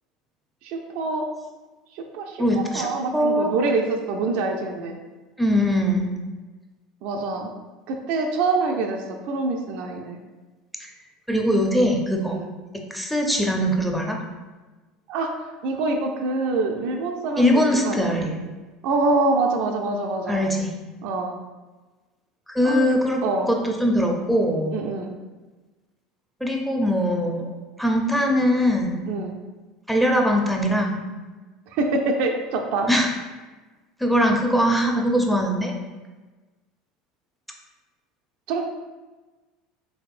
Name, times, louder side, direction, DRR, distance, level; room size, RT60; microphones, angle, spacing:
voice 1, 0.6-1.3 1.9-5.0 7.0-7.5 7.9-10.2 12.2-12.5 15.1-15.3 15.6-18.1 18.8-20.4 21.0-21.4 22.6-22.9 23.2-23.5 24.7-25.1 29.1-29.4 31.7-32.9 38.5-38.6, right 3 dB, 65° right, 3 dB, 0.4 m, -25 dB
voice 2, 2.4-2.9 3.1-3.5 5.4-6.1 10.8-10.9 11.3-12.4 12.9-14.2 17.4-18.4 20.3-20.7 22.5-23.2 23.5-24.8 26.4-27.5 27.8-29.1 29.9-31.0 32.9-33.1 34.0-35.7, equal, ahead, 0 dB, 0.5 m, -21 dB
3.4 x 3.1 x 2.4 m, 1.3 s
hypercardioid pair, 80°, 3 cm